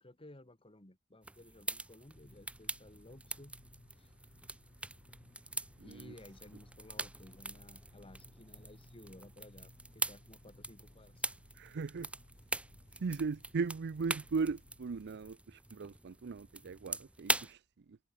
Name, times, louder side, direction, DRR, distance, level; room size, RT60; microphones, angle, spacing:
voice 1, 0.0-3.5 4.0-4.1 5.8-11.2, left 1 dB, 25° left, 2.6 m, -56 dB
sound 1, 1.2-17.5, right 2 dB, 5° right, 0.7 m, -42 dB
sound 2, 2.1-15.3, left 1 dB, 50° left, 2.0 m, -61 dB
voice 2, 5.8-6.1 11.5-12.1 12.9-18.0, right 4 dB, 50° right, 0.5 m, -38 dB
head